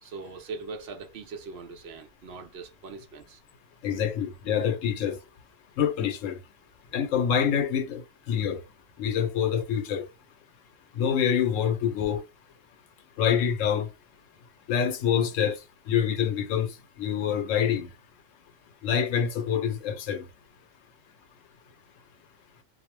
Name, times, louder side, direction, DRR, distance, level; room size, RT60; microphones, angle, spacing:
voice 1, 0.0-3.4, right 4 dB, 65° right, 0.7 m, -41 dB
voice 2, 3.8-5.2 5.8-6.4 6.9-8.6 9.0-10.1 11.0-12.2 13.2-13.9 14.7-15.6 15.9-16.7 17.0-17.9 18.8-20.2, left 8 dB, 80° left, 1.0 m, -26 dB
2.3 x 2.0 x 3.0 m
omnidirectional pair, 1.3 m